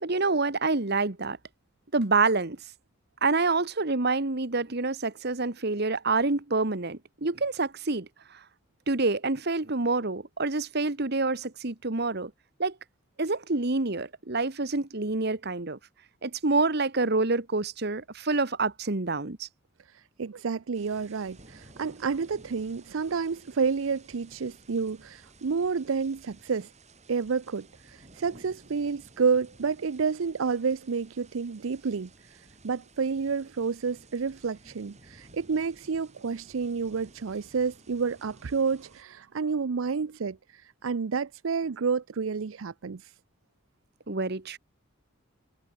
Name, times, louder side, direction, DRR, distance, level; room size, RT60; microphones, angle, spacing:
voice 1, 0.0-1.4 1.9-2.6 3.2-8.1 8.9-12.3 12.6-12.7 13.2-15.8 16.2-19.5 44.1-44.6, right 3 dB, 55° right, 1.5 m, -27 dB
voice 2, 19.9-26.7 27.1-43.1, right 5 dB, 85° right, 0.6 m, -30 dB
sound 1, 20.7-39.0, right 2 dB, 35° right, 6.9 m, -55 dB
head